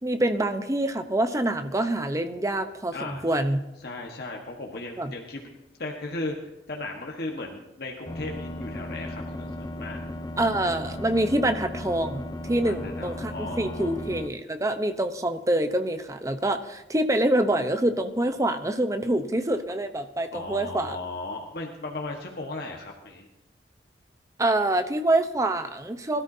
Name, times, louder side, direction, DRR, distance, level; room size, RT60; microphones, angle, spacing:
voice 1, 0.0-3.6 5.0-5.1 10.4-21.0 24.4-26.2, right 1 dB, 20° right, 8 dB, 0.8 m, -26 dB
voice 2, 2.9-3.2 3.8-5.4 5.8-6.3 6.7-10.0 12.6-14.0 20.3-23.3, left 2 dB, 60° left, 0 dB, 1.4 m, -36 dB
sound 1, 8.1-14.3, left 1 dB, 20° left, 0.6 m, -36 dB
21.5 x 13.0 x 2.8 m, 0.96 s
head